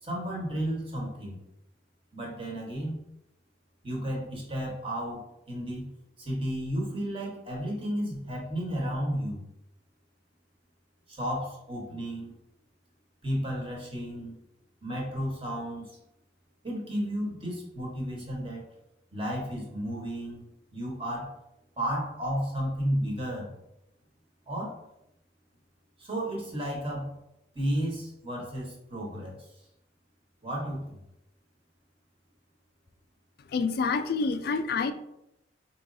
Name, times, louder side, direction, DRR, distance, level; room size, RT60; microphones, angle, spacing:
voice 1, 0.0-1.4 2.1-3.0 3.8-5.9 6.2-9.4 11.1-12.3 13.2-14.4 14.8-15.9 16.6-18.6 19.1-20.4 20.7-21.3 21.8-23.5 24.5-24.8 26.0-27.1 27.5-29.5 30.4-31.0, equal, 30° right, -3 dB, 1.2 m, -33 dB
voice 2, 33.5-34.9, left 4 dB, 60° left, 10 dB, 0.3 m, -27 dB
4.6 x 3.0 x 2.6 m, 0.83 s
head